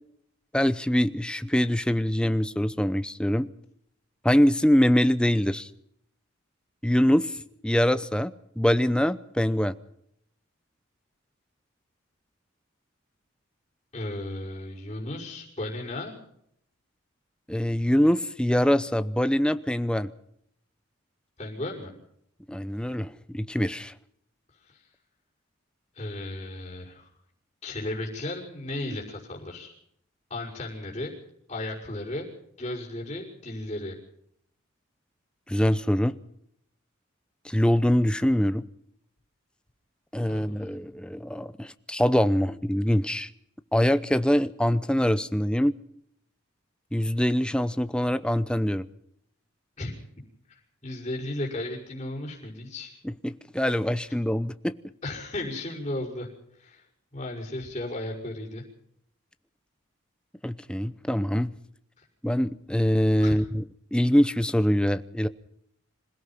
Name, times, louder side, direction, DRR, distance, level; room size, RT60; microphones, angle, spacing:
voice 1, 0.5-3.5 4.2-5.7 6.8-7.4 7.6-9.7 17.5-20.1 22.5-23.9 35.5-36.2 37.4-38.6 40.1-43.3 43.7-45.8 46.9-48.9 53.0-54.7 60.4-61.5 62.2-63.6 63.9-65.3, equal, 5° left, 12 dB, 0.7 m, -24 dB
voice 2, 13.9-16.2 21.4-21.9 24.6-24.9 25.9-27.1 27.6-29.7 30.3-31.1 31.5-32.3 32.6-34.0 40.3-40.6 49.8-49.9 50.5-53.0 55.0-56.3 56.6-56.8 57.1-58.6 62.0-62.1 63.2-63.4, left 1 dB, 30° left, -8 dB, 5.8 m, -35 dB
26.5 x 17.0 x 5.8 m, 0.72 s
head